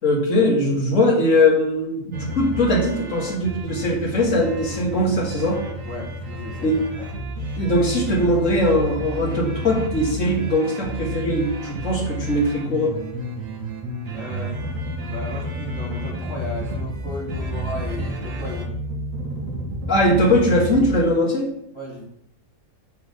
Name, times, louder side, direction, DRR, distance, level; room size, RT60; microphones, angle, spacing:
voice 1, 0.0-5.6 6.6-6.8 7.6-12.9 19.9-21.5, left 1 dB, 55° left, -2 dB, 2.0 m, -20 dB
sound 1, 2.1-21.0, right 1 dB, 65° right, 1.3 m, -31 dB
voice 2, 5.8-7.0 14.1-18.7 21.7-22.0, left 2 dB, 20° left, -5 dB, 1.6 m, -35 dB
6.8 x 3.4 x 5.2 m, 0.76 s
omnidirectional pair, 1.6 m